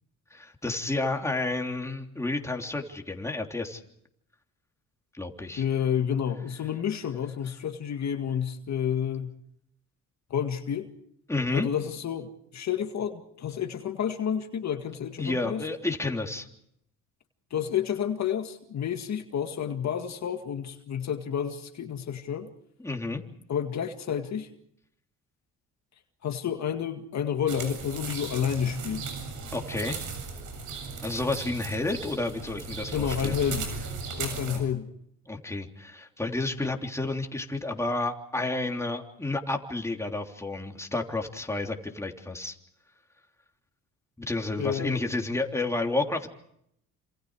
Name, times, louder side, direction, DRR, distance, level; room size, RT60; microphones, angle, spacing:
voice 1, 0.3-3.8 5.1-5.6 11.3-11.7 15.2-16.5 22.8-23.2 29.5-30.0 31.0-33.4 34.5-34.6 35.3-42.6 44.2-46.3, left 2 dB, 10° left, 2 dB, 3.3 m, -31 dB
voice 2, 5.6-9.3 10.3-10.9 11.5-15.7 17.5-22.5 23.5-24.5 26.2-29.1 32.9-33.7 34.2-34.9 44.6-45.0, left 8 dB, 55° left, 6 dB, 2.0 m, -30 dB
sound 1, 27.5-34.6, right 5 dB, 70° right, 7.5 m, -36 dB
28.0 x 27.0 x 4.9 m, 0.73 s
cardioid pair, 90°, 33 cm